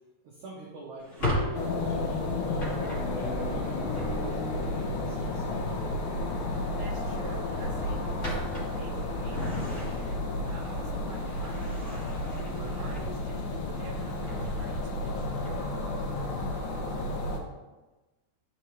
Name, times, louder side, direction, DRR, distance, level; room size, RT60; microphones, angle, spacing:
voice 1, 0.2-5.7, right 3 dB, 85° right, -3 dB, 1.7 m, -44 dB
Drawer open or close, 1.0-4.7 6.1-6.4 6.8-6.9 7.4-10.3 10.8-13.5 13.9-15.9, equal, 50° left, 0.8 m, -37 dB
sound 1, 1.5-17.4, left 2 dB, 70° left, 1.9 m, -32 dB
voice 2, 6.7-12.1 12.5-15.2, right 3 dB, 55° right, -6 dB, 1.2 m, -47 dB
13.0 x 4.6 x 3.1 m, 1.1 s
omnidirectional pair, 5.1 m